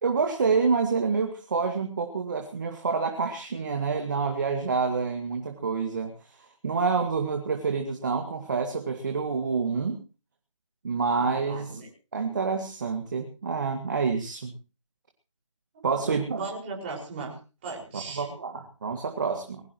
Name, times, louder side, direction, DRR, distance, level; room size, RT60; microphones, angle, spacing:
voice 1, 0.0-10.0 10.8-11.8 12.1-14.5 15.8-16.5 18.1-19.6, right 5 dB, 35° right, 5 dB, 2.1 m, -28 dB
voice 2, 11.2-11.9 16.0-17.3 17.6-18.2, right 4 dB, 20° right, -2 dB, 5.6 m, -37 dB
21.0 x 18.0 x 3.1 m, 0.35 s
figure-of-eight pair, 160°, 16 cm